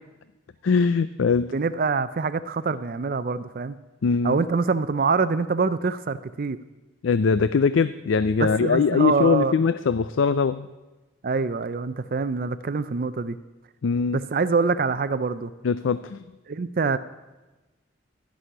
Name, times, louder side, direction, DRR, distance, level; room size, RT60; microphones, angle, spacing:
voice 1, 0.6-1.5 4.0-4.4 7.0-10.7 13.8-14.2 15.6-16.2, left 5 dB, 80° left, 14 dB, 0.4 m, -21 dB
voice 2, 1.5-3.8 4.2-6.6 8.4-9.5 11.2-13.4 14.1-15.5 16.5-17.0, right 4 dB, 45° right, 13 dB, 0.4 m, -25 dB
14.0 x 6.3 x 10.0 m, 1.1 s
head